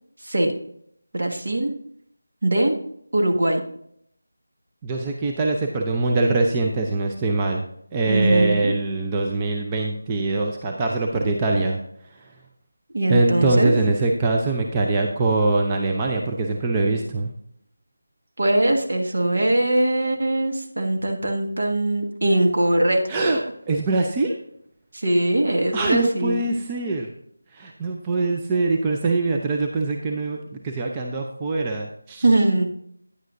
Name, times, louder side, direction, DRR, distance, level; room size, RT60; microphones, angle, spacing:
voice 1, 0.2-0.5 1.1-1.7 2.4-2.7 3.1-3.6 8.1-8.7 12.9-13.7 18.4-23.4 24.9-26.5 32.2-32.6, right 1 dB, 60° right, 2 dB, 1.5 m, -21 dB
voice 2, 4.8-7.7 7.9-11.8 13.1-17.3 23.1-23.4 23.7-24.4 25.7-27.1 27.5-32.3, right 3 dB, 15° right, 1 dB, 0.5 m, -23 dB
9.7 x 9.0 x 2.6 m, 0.69 s
figure-of-eight pair, 170°, 0 cm